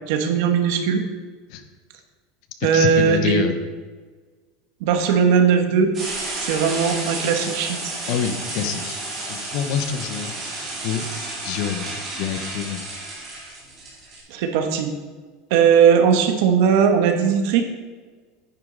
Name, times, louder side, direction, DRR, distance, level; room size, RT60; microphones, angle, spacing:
voice 1, 0.1-1.0 2.6-3.5 4.8-5.9 6.4-7.9 14.3-14.9 15.5-17.6, right 7 dB, 60° right, 5 dB, 1.4 m, -18 dB
voice 2, 2.6-3.6 8.1-9.0 9.3-10.3 10.8-11.1 11.4-12.8, left 7 dB, 50° left, 7 dB, 1.0 m, -26 dB
sound 1, 5.9-14.2, right 2 dB, 20° right, 3.5 m, -32 dB
10.0 x 9.4 x 4.0 m, 1.4 s
supercardioid pair, 170°, 0 cm